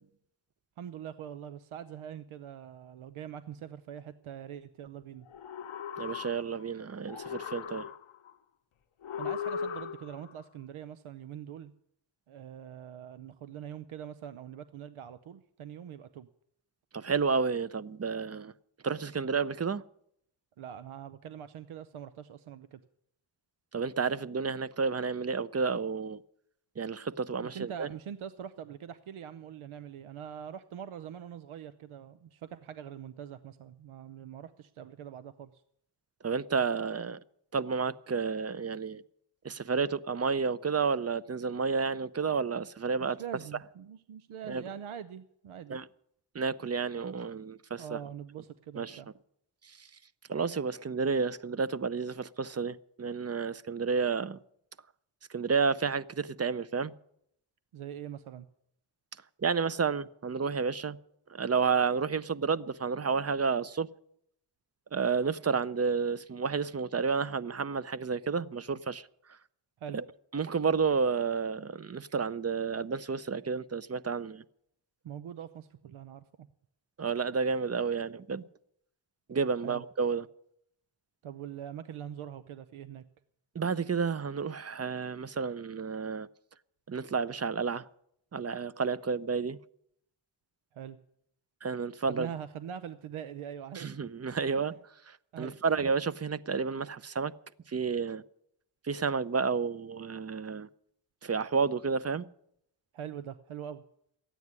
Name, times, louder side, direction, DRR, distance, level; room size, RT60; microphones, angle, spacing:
voice 1, 0.8-5.3 9.2-11.7 12.3-16.3 20.6-22.8 27.4-35.6 43.0-45.8 47.8-49.1 57.7-58.5 69.8-70.0 75.0-76.5 79.6-79.8 81.2-83.0 90.7-91.0 92.1-93.9 94.5-94.6 95.3-95.5 102.9-103.8, right 9 dB, 85° right, 0.7 m, -43 dB
sound 1, 5.3-6.7 7.0-8.3 9.0-10.3, left 7 dB, 85° left, 1.0 m, -38 dB
voice 2, 6.0-7.9 16.9-18.5 18.8-19.8 23.7-26.2 26.8-27.9 36.2-37.2 37.5-39.0 39.4-43.2 44.5-44.6 45.7-45.8 46.3-48.0 48.8-49.0 50.3-54.4 55.3-56.9 59.4-61.0 61.3-63.9 64.9-69.1 69.9-70.0 70.3-74.4 77.0-78.4 79.3-80.3 83.5-86.3 86.9-87.8 88.3-89.6 91.6-92.3 93.8-94.7 95.1-97.3 97.7-98.2 98.9-100.7 101.2-102.3, right 5 dB, 30° right, 0.6 m, -31 dB
13.5 x 9.2 x 9.5 m
cardioid pair, 65°, 48 cm